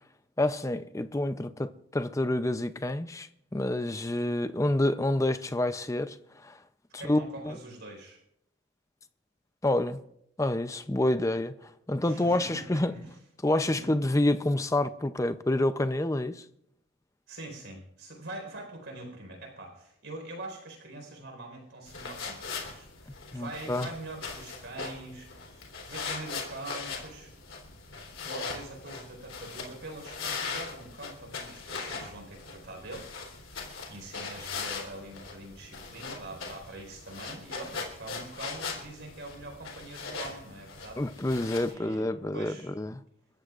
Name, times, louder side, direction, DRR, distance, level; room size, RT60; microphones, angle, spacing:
voice 1, 0.4-6.2 6.4-6.6 6.9-7.5 9.6-10.0 10.4-12.9 13.4-16.4 23.3-23.9 41.0-43.0, left 1 dB, 15° left, 0.5 m, -28 dB
voice 2, 7.0-8.2 12.0-13.1 13.7-13.9 17.3-27.3 28.2-33.1 33.5-41.0 41.7-42.7, right 2 dB, 60° right, 4.4 m, -44 dB
sound 1, 21.9-41.7, left 4 dB, 65° left, 3.5 m, -40 dB
29.5 x 14.5 x 2.5 m
head